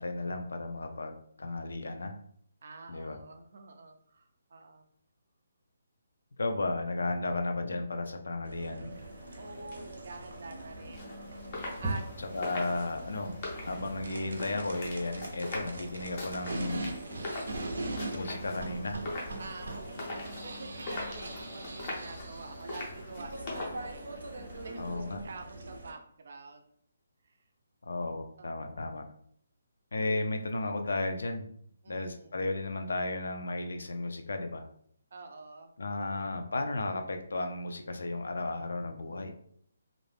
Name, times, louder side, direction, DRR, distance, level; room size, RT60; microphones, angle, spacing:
voice 1, 0.0-2.1 2.9-3.2 6.4-8.9 12.3-13.4 13.7-16.9 18.1-19.0 24.8-25.2 27.8-29.0 29.9-31.5 31.9-34.7 35.8-39.3, left 2 dB, 80° left, 6 dB, 0.4 m, -34 dB
voice 2, 2.6-4.8 9.4-11.1 11.4-11.5 11.8-12.0 12.5-12.6 19.4-26.6 27.2-27.3 28.4-28.9 31.8-32.4 35.1-35.7, right 3 dB, 40° right, 5 dB, 0.3 m, -47 dB
sound 1, 8.4-25.9, right 2 dB, 90° right, 0.5 m, -42 dB
sound 2, 8.9-24.9, left 2 dB, 20° left, 0.5 m, -43 dB
sound 3, 11.8-25.8, right 2 dB, 5° right, 0.8 m, -48 dB
2.4 x 2.0 x 3.2 m, 0.65 s
hypercardioid pair, 180°, 0 cm